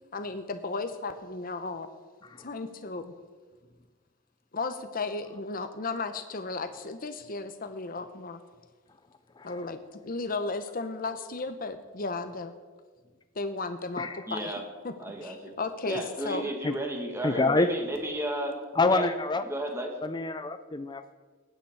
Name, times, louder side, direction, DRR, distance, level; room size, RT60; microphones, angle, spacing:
voice 1, 0.1-1.9 2.4-3.1 4.5-8.4 9.4-12.5 13.3-14.9 15.2-16.5, left 3 dB, 40° left, 8 dB, 0.9 m, -35 dB
voice 2, 14.3-14.6 15.0-15.5 15.8-18.6 18.9-19.1 19.4-19.9, right 1 dB, 10° right, 2 dB, 2.0 m, -33 dB
voice 3, 17.2-17.7 18.8-19.4 20.0-21.1, left 3 dB, 20° left, 10 dB, 0.5 m, -26 dB
19.5 x 9.0 x 4.8 m, 1.4 s
head